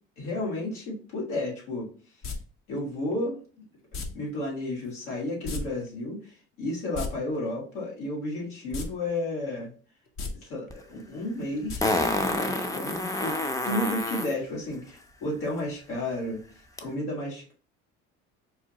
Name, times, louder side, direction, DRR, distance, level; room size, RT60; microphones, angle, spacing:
voice 1, 0.2-1.9 2.7-3.6 3.9-9.7 10.4-13.4 13.6-16.4 16.8-17.5, left 1 dB, 85° left, -3 dB, 1.7 m, -32 dB
sound 1, 2.2-2.4 3.9-4.1 5.4-5.6 5.9-6.0 6.8-7.1 8.7-8.9 9.2-9.3 10.1-10.3 11.7-11.8 12.1-12.2, left 4 dB, 55° left, 0.8 m, -33 dB
Fart, 10.7-10.8 11.8-14.3 16.8-16.9, left 2 dB, 10° left, 0.4 m, -28 dB
4.6 x 2.2 x 2.8 m, 0.39 s
supercardioid pair, 75°, 34 cm